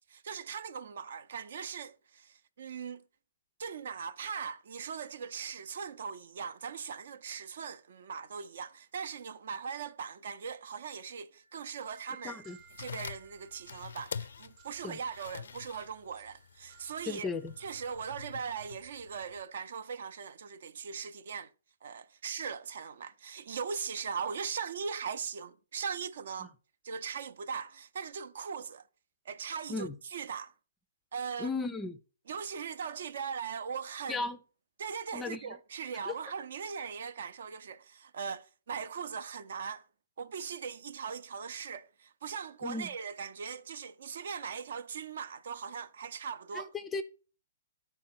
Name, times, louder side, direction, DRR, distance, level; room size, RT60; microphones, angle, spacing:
voice 1, 0.1-3.0 3.6-12.4 12.8-17.3 17.6-21.5 21.8-26.5 26.8-28.8 29.3-30.5 31.1-31.5 32.3-34.3 34.8-39.8 40.2-46.7, right 6 dB, 60° right, 0.6 m, -40 dB
sound 1, 11.3-19.8, right 8 dB, 25° right, 0.8 m, -62 dB
voice 2, 12.2-12.6 14.8-15.0 17.0-17.5 26.4-26.5 29.7-30.0 31.4-32.0 34.1-34.4 35.1-35.6 36.1-36.2 42.6-42.9 46.5-47.0, left 3 dB, 10° left, 0.4 m, -36 dB
sound 2, 12.6-19.4, left 6 dB, 75° left, 0.4 m, -46 dB
9.7 x 4.3 x 4.2 m
hypercardioid pair, 160°, 0 cm